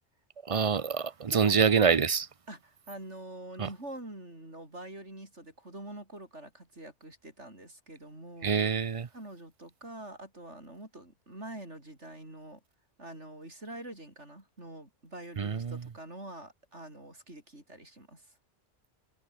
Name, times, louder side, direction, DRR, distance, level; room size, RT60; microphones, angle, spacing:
voice 1, 0.5-2.3 3.6-3.7 8.4-9.1 15.4-15.8, right 6 dB, 40° right, 0.6 m, -26 dB
voice 2, 1.3-1.6 2.5-8.6 9.1-12.6 13.0-18.3, right 1 dB, 85° right, 7.9 m, -45 dB
omnidirectional pair, 1.2 m